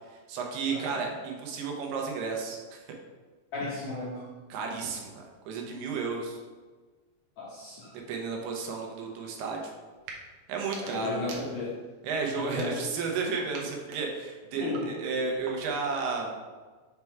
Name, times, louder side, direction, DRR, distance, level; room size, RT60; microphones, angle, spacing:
voice 1, 0.1-2.8 4.5-6.4 7.9-9.7 10.5-11.4 12.0-16.4, right 4 dB, 90° right, 1 dB, 2.9 m, -33 dB
voice 2, 3.5-4.2 7.4-7.9 10.8-11.7 12.4-12.9 14.6-14.9, left 3 dB, 65° left, -7 dB, 1.8 m, -35 dB
sound 1, 9.9-10.2 10.6-11.9 12.4-13.1 13.5-15.9, right 4 dB, 75° right, 2.3 m, -47 dB
6.6 x 3.6 x 4.5 m, 1.4 s
omnidirectional pair, 4.4 m